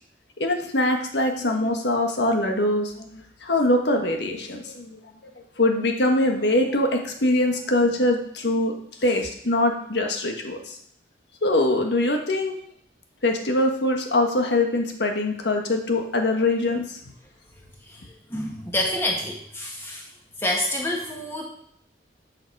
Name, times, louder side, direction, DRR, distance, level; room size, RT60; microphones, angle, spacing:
voice 1, 0.4-5.0 5.3-8.7 9.0-10.8 11.4-12.5 13.2-17.1, left 1 dB, 85° left, 3 dB, 1.5 m, -23 dB
voice 2, 18.3-20.1 20.4-21.4, left 1 dB, 15° left, -1 dB, 1.7 m, -27 dB
9.7 x 5.8 x 4.8 m, 0.67 s
head